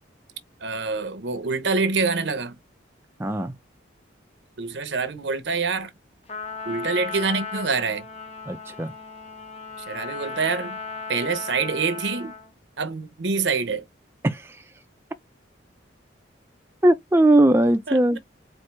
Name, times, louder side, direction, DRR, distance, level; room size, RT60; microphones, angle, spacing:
voice 1, 0.6-2.6 4.6-5.9 6.6-8.1 9.9-10.8 11.1-12.3 12.8-13.8 17.9-18.0, right 4 dB, 70° right, 0.8 m, -26 dB
voice 2, 3.2-3.5 8.5-8.9 14.2-14.6 16.8-18.2, right 1 dB, 10° right, 0.4 m, -19 dB
Trumpet, 6.3-12.5, left 5 dB, 35° left, 0.6 m, -36 dB
4.4 x 2.6 x 3.2 m
head